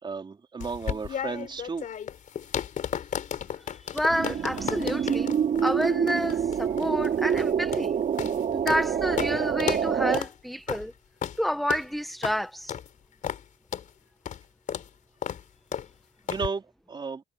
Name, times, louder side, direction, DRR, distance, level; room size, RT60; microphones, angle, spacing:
voice 1, 0.0-1.8 16.3-17.2, right 4 dB, 25° right, 4.5 m, -33 dB
sound 1, 0.6-8.9 9.2-9.3 9.6-9.9 10.1-10.3 10.7-10.8 11.2-11.4 11.7-11.9 12.2-12.4 12.7-12.9 13.2-13.4 13.7-13.9 14.3-14.4 14.7-14.9 15.2-15.4 15.7-15.9 16.3-16.5, left 8 dB, 50° left, 4.4 m, -33 dB
voice 2, 3.8-5.3 5.6-7.9 8.5-10.9 11.4-12.7, equal, ahead, 1.4 m, -29 dB
sound 2, 4.1-10.2, right 8 dB, 50° right, 5.0 m, -26 dB
cardioid pair, 110°, 17 cm